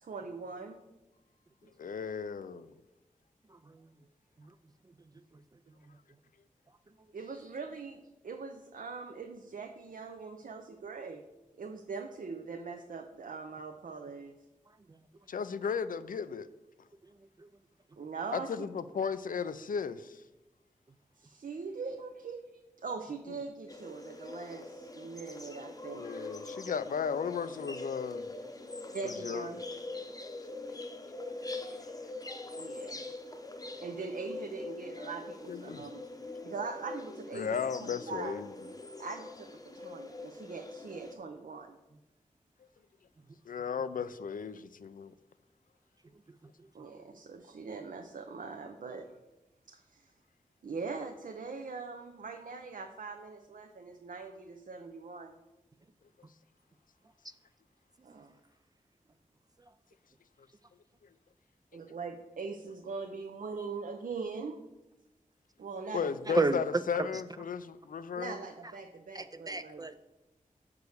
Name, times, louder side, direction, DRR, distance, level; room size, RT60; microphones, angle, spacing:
voice 1, 0.0-0.8 7.1-11.2 11.6-14.3 18.0-18.7 21.2-22.4 22.8-26.2 28.9-29.6 32.6-33.1 33.8-36.1 36.4-38.4 39.0-41.8 46.7-49.1 49.7-50.1 50.6-55.3 58.0-58.4 61.7-64.6 65.6-66.5 68.2-69.9, right 4 dB, 75° right, 0.6 m, -42 dB
voice 2, 1.8-2.7 15.3-16.5 18.3-20.2 25.9-28.3 29.0-29.5 35.5-35.9 37.3-38.5 43.5-45.1 65.9-68.4, left 6 dB, 75° left, 0.4 m, -35 dB
sound 1, 23.7-41.1, left 2 dB, 25° left, 0.7 m, -43 dB
voice 3, 66.3-66.6 67.0-67.1 69.1-70.0, right 3 dB, 25° right, 0.3 m, -30 dB
6.9 x 4.8 x 6.4 m
wide cardioid pair, 85°, 14 cm